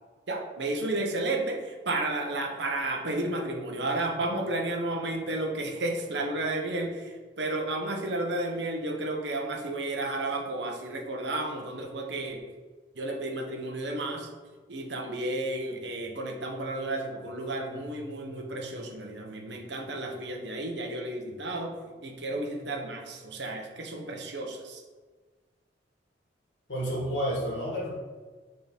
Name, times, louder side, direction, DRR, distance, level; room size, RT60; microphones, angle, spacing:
voice 1, 0.3-12.4 12.9-14.3 14.7-21.7 22.0-24.8, right 2 dB, 65° right, 1 dB, 1.1 m, -32 dB
voice 2, 26.7-27.9, equal, 75° left, -4 dB, 1.8 m, -30 dB
6.4 x 3.8 x 4.2 m, 1.4 s
head